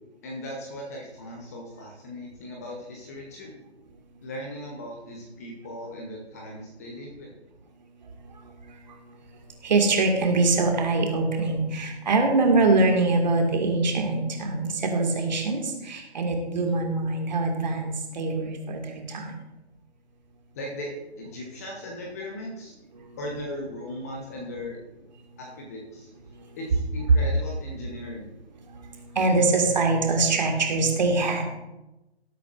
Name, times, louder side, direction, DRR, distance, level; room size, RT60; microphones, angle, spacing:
voice 1, 0.2-3.6 4.2-7.3 20.5-22.7 23.2-24.8 25.4-26.1 26.6-28.3, left 1 dB, 15° left, 0 dB, 0.9 m, -38 dB
voice 2, 8.4-19.3 22.9-23.2 26.3-26.6 27.1-27.2 28.6-31.4, right 3 dB, 40° right, 2 dB, 2.0 m, -24 dB
18.5 x 8.3 x 2.5 m, 0.99 s
figure-of-eight pair, 150°, 33 cm